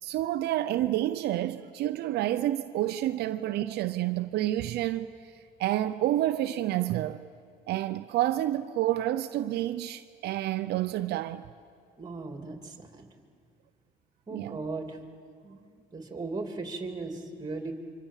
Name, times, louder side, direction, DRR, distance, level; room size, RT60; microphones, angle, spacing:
voice 1, 0.0-5.3 5.6-7.2 7.7-11.5 14.3-14.6, right 14 dB, 75° right, 0.6 m, -29 dB
voice 2, 12.0-13.1 14.3-15.0 15.4-15.6 15.9-17.7, right 3 dB, 25° right, 2.9 m, -37 dB
25.5 x 25.5 x 7.4 m
cardioid pair, 110°, 17 cm